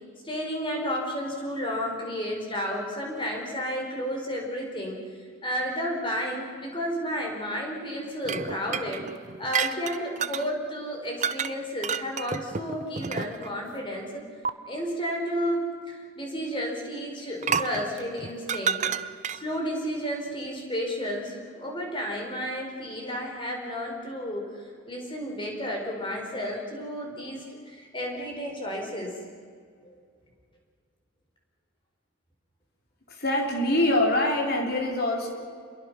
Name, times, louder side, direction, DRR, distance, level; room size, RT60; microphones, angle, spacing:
voice 1, 0.2-5.0 5.4-9.0 9.4-14.2 14.7-15.6 15.9-18.9 19.3-24.5 24.9-29.2 29.8-29.9, equal, 25° left, 0 dB, 4.6 m, -32 dB
sound 1, 8.2-10.5 11.2-11.5 11.8-13.6 14.4-14.5 17.4-19.6, right 6 dB, 35° right, 0.6 m, -30 dB
voice 2, 33.1-35.3, left 1 dB, 45° left, 1 dB, 4.0 m, -24 dB
27.5 x 22.5 x 6.1 m, 2.1 s
head